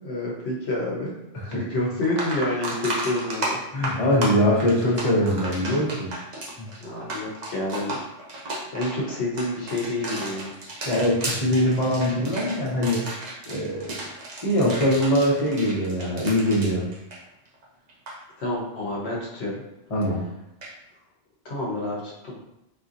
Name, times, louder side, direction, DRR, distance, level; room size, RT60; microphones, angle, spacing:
voice 1, 0.0-1.2 1.5-3.6 6.8-8.0 8.7-10.5 18.4-19.6 21.4-22.3, left 1 dB, 65° left, -4 dB, 1.1 m, -28 dB
sound 1, 1.5-1.6 2.0-17.6 17.9-18.2 20.6-20.7, right 1 dB, 45° right, 0.7 m, -34 dB
voice 2, 3.7-6.1 6.6-6.7 10.9-13.1 13.5-14.0 14.4-16.9 19.9-20.3, equal, 30° left, -6 dB, 0.9 m, -22 dB
4.2 x 2.7 x 2.5 m, 0.86 s
omnidirectional pair, 1.2 m